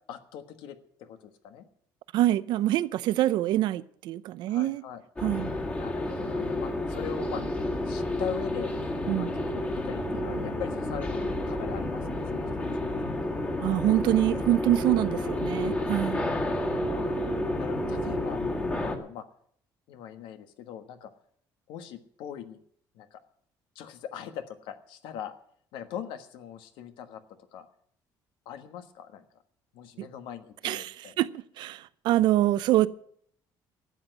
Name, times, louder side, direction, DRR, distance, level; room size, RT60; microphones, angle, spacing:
voice 1, 0.1-1.7 4.5-5.0 5.7-7.5 7.8-8.7 9.1-12.5 12.8-13.9 16.9-17.2 17.6-18.4 18.8-19.2 19.9-21.1 21.7-22.6 22.9-23.2 23.7-25.3 25.7-27.2 27.5-27.7 28.4-29.2 29.7-31.2, left 9 dB, 80° left, 1.4 m, -41 dB
voice 2, 2.1-4.8 5.2-5.5 9.1-9.3 13.6-16.3 30.0-30.1 30.6-32.9, right 14 dB, 65° right, 0.6 m, -25 dB
sound 1, 5.2-19.0, left 1 dB, 20° left, 1.8 m, -30 dB
13.0 x 8.0 x 9.2 m
cardioid pair, 165°, 8 cm